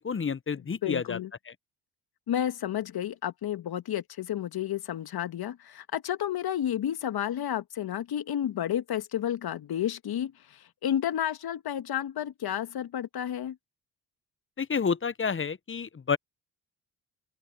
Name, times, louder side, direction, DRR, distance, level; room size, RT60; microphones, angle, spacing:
voice 1, 0.0-1.2 1.5-1.6 14.6-16.2, left 6 dB, 25° left, 1.2 m, -29 dB
voice 2, 0.8-1.3 2.3-13.6, left 10 dB, 55° left, 2.0 m, -31 dB
open air
hypercardioid pair, 50°, 45 cm